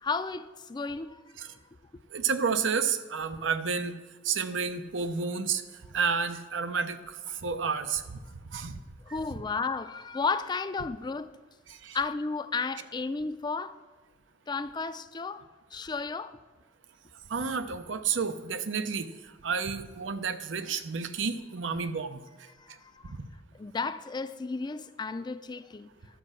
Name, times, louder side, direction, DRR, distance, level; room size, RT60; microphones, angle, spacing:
voice 1, 0.0-1.2 9.1-11.3 11.9-13.7 14.5-15.4 15.7-16.4 22.6-23.1 23.5-25.9, left 4 dB, 25° left, 0.4 m, -33 dB
voice 2, 2.1-4.0 4.2-5.6 5.9-8.0 8.5-8.8 11.8-12.0 17.3-19.1 19.4-22.2 23.1-23.3, right 5 dB, 90° right, 0.7 m, -30 dB
11.0 x 5.3 x 7.4 m
head